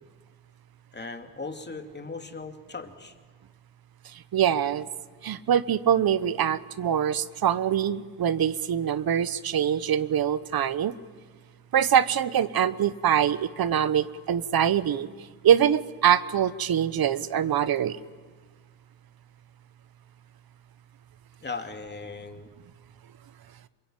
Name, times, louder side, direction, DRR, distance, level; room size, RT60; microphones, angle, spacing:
voice 1, 0.9-3.1 21.4-22.5, left 4 dB, 25° left, 6 dB, 2.5 m, -38 dB
voice 2, 4.0-4.9 5.2-10.9 11.7-15.1 15.4-18.0, right 9 dB, 60° right, 15 dB, 1.1 m, -24 dB
27.0 x 22.5 x 9.0 m, 1.5 s
cardioid pair, 80°, 41 cm